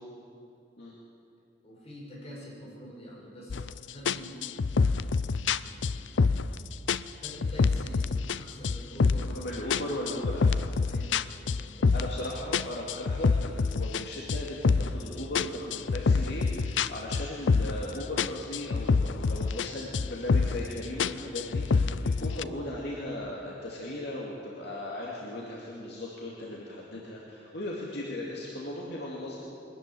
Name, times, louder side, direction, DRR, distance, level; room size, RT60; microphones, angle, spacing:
voice 1, 1.6-6.2 7.2-9.5 9.9-10.0 10.8-11.2 11.6-11.9, equal, 35° left, -4 dB, 6.9 m, -46 dB
sound 1, 3.5-3.7 4.1-6.6 6.9-8.4 8.6-9.4 9.7-12.2 12.5-15.0 15.3-17.9 18.2-19.7 19.9-20.7 21.0-22.4, left 4 dB, 85° left, 0.5 m, -26 dB
voice 2, 9.3-10.6 11.9-29.4, left 1 dB, 65° left, -4 dB, 2.6 m, -37 dB
22.5 x 13.5 x 9.4 m, 2.6 s
head